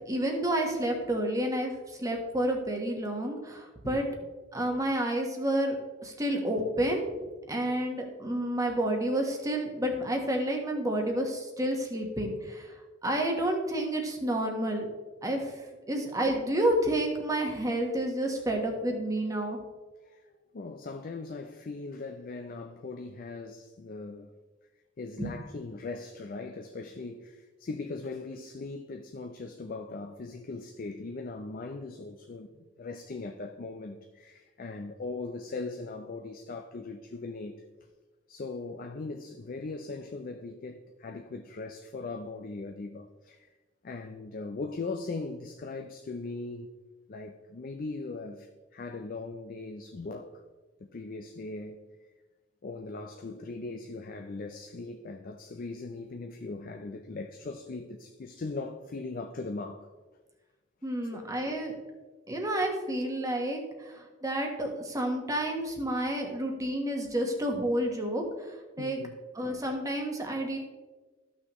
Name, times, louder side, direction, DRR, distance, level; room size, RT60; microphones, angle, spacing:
voice 1, 0.1-4.0 4.5-5.8 6.0-7.1 7.5-12.7 13.0-14.9 15.2-19.6 25.2-25.3 60.8-61.7 62.3-69.0 69.3-70.6, right 1 dB, 20° right, 1.2 m, -30 dB
voice 2, 20.5-24.3 25.0-37.6 38.3-43.5 43.8-46.7 47.1-50.3 50.9-51.8 52.6-59.9 61.1-61.2 68.8-69.2, left 3 dB, 50° left, 0.5 m, -39 dB
13.0 x 6.1 x 3.0 m
head